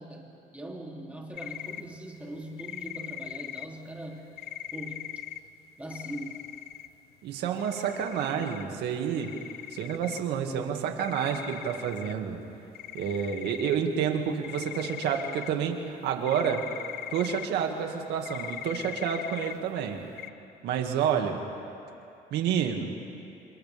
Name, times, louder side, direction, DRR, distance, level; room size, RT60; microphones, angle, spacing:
voice 1, 0.0-4.3 4.7-5.1 5.8-6.4, right 1 dB, 10° right, -2 dB, 3.0 m, -41 dB
sound 1, 1.3-1.8 2.6-3.7 4.4-5.4 5.9-6.9 7.6-8.6 9.2-10.2 11.0-12.1 12.7-13.8 14.3-15.5 16.3-17.5 18.3-19.5 20.2-20.3, left 12 dB, 65° left, 0.6 m, -40 dB
voice 2, 7.2-9.3 9.7-12.4 12.9-16.7 17.1-20.1 20.6-21.5 22.3-22.9, right 8 dB, 80° right, 3 dB, 2.1 m, -29 dB
28.5 x 26.5 x 3.5 m, 2.7 s
cardioid pair, 110°, 17 cm